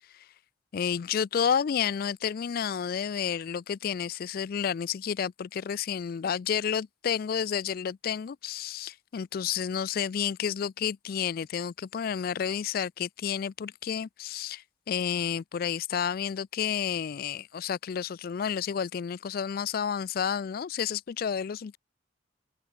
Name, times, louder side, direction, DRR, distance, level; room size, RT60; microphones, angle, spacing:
voice 1, 0.7-21.8, left 7 dB, 50° left, 0.3 m, -30 dB
head